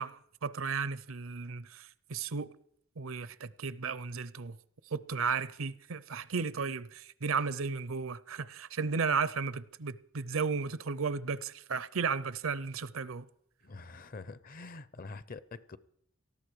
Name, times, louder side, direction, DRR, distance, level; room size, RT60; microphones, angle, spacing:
voice 1, 0.0-2.5 3.0-4.6 4.8-13.3, right 5 dB, 80° right, 0.7 m, -34 dB
voice 2, 13.6-15.8, left 3 dB, 45° left, 0.7 m, -45 dB
18.0 x 14.0 x 4.8 m
head